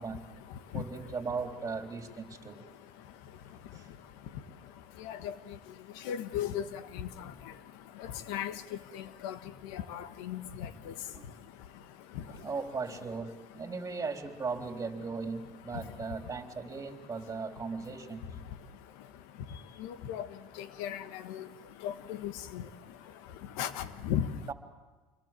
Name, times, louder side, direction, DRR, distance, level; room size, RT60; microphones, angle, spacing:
voice 1, 0.0-1.4 1.8-13.0 13.3-13.8 14.6-14.7 15.0-24.5, left 9 dB, 80° left, 11 dB, 1.5 m, -41 dB
voice 2, 0.7-2.7 3.7-3.9 11.1-11.3 12.4-18.2 24.5-24.6, right 4 dB, 25° right, 4 dB, 3.8 m, -37 dB
28.0 x 23.0 x 7.6 m, 1.3 s
supercardioid pair, 85°, 11 cm